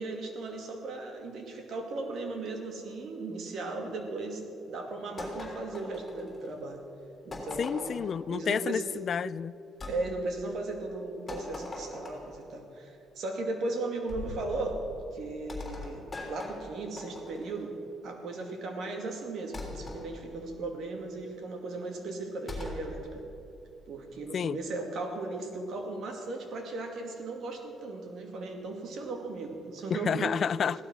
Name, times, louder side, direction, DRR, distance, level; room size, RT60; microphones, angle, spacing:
voice 1, 0.0-6.8 7.2-8.0 8.3-8.8 9.9-14.8 15.1-17.7 18.0-23.2 23.9-30.4, right 2 dB, 65° right, 3 dB, 2.4 m, -36 dB
sound 1, 5.2-6.6 7.3-8.1 9.8-10.0 11.3-12.4 14.1-14.5 15.5-17.6 19.5-20.0 22.5-22.9, left 2 dB, 20° left, 3.5 m, -41 dB
voice 2, 7.6-9.5 24.3-24.6 29.9-30.8, left 7 dB, 50° left, 18 dB, 0.3 m, -30 dB
16.5 x 12.0 x 6.2 m, 2.8 s
cardioid pair, 115°, 0 cm